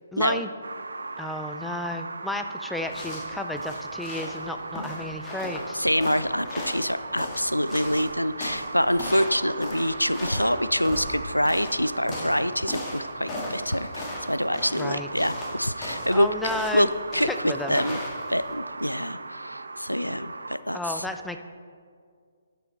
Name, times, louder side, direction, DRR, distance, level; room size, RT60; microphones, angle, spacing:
voice 1, 0.1-0.5 1.2-5.8 14.8-15.3 16.1-16.9 17.3-17.8 20.7-21.4, left 1 dB, 5° left, 6 dB, 0.4 m, -32 dB
sound 1, 0.6-20.6, right 3 dB, 65° right, 0.5 m, -38 dB
sound 2, 2.8-18.5, left 1 dB, 20° left, 1.9 m, -37 dB
voice 2, 5.7-16.3 16.7-18.0 18.3-21.1, equal, 90° left, 13 dB, 0.4 m, -26 dB
12.5 x 6.7 x 4.2 m, 2.1 s
figure-of-eight pair, 135°, 0 cm